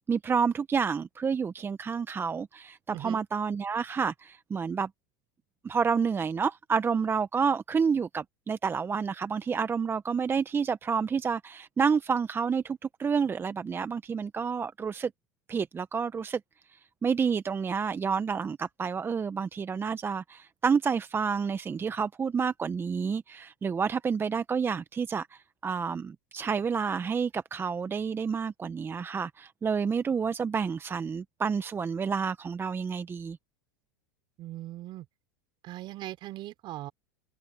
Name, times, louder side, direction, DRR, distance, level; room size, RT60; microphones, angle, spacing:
voice 1, 0.1-4.9 5.6-15.1 15.5-16.4 16.7-33.4, right 6 dB, 20° right, 1.0 m, -29 dB
voice 2, 2.9-3.2 34.4-35.0 35.6-36.9, right 15 dB, 45° right, 4.9 m, -39 dB
hypercardioid pair, 100°, 11 cm